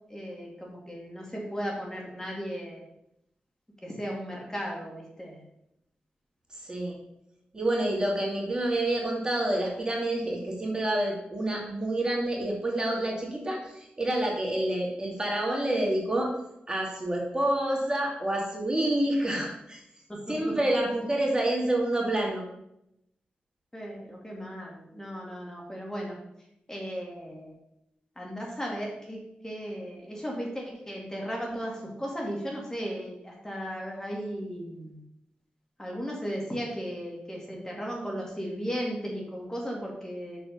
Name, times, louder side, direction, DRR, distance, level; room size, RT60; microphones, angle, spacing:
voice 1, 0.1-2.8 3.8-5.4 19.3-19.4 20.1-20.6 21.0-21.1 23.7-26.2 26.7-27.5 28.2-35.0 35.8-40.4, equal, 15° left, -2 dB, 2.1 m, -36 dB
voice 2, 6.6-7.0 7.5-16.3 16.7-19.8 20.3-22.4, right 1 dB, 25° right, -2 dB, 2.2 m, -28 dB
6.2 x 4.8 x 5.2 m, 0.82 s
cardioid pair, 55°, 3 cm